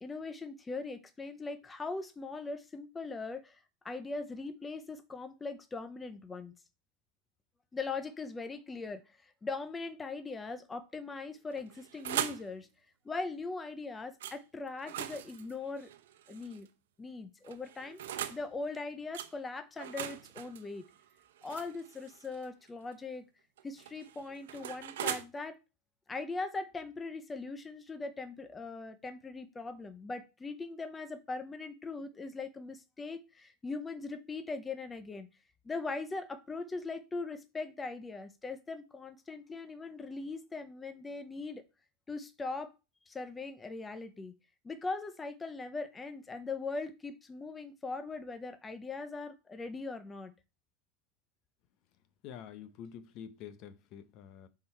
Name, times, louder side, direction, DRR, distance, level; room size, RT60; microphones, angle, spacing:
voice 1, 0.0-6.5 7.7-12.7 13.0-15.9 16.3-16.7 17.0-18.0 18.3-20.9 21.4-23.2 23.6-25.6 26.1-35.3 35.6-41.6 42.1-42.7 43.1-44.3 44.6-50.3, left 3 dB, 15° left, 0.6 m, -40 dB
sound 1, 11.5-12.5 14.2-14.4 14.8-16.7 17.4-18.4 19.1-19.3 19.8-22.5 23.6-25.2, right 11 dB, 85° right, 0.8 m, -40 dB
voice 2, 52.2-54.5, left 8 dB, 45° left, 0.8 m, -47 dB
7.2 x 3.9 x 4.5 m
supercardioid pair, 140°, 0 cm